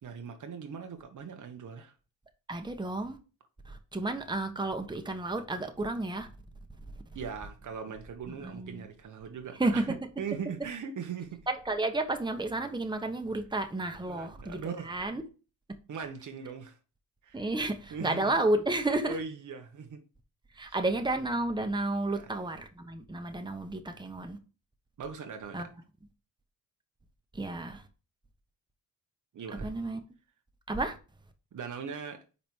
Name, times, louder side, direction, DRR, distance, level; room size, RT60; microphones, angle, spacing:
voice 1, 0.0-1.9 7.1-9.9 10.2-11.4 14.1-14.9 15.9-16.8 17.2-17.5 17.9-18.4 19.1-20.0 20.5-20.8 22.1-22.3 25.0-25.7 29.3-29.7 31.5-32.2, right 6 dB, 60° right, 1.2 m, -40 dB
voice 2, 2.5-3.2 3.6-6.3 8.3-8.9 9.6-9.9 11.5-15.2 17.3-19.2 20.5-24.4 25.5-25.7 27.3-27.9 29.6-30.0 30.7-31.0, right 2 dB, 15° right, 1.2 m, -31 dB
5.4 x 4.1 x 4.5 m
supercardioid pair, 60°, 34 cm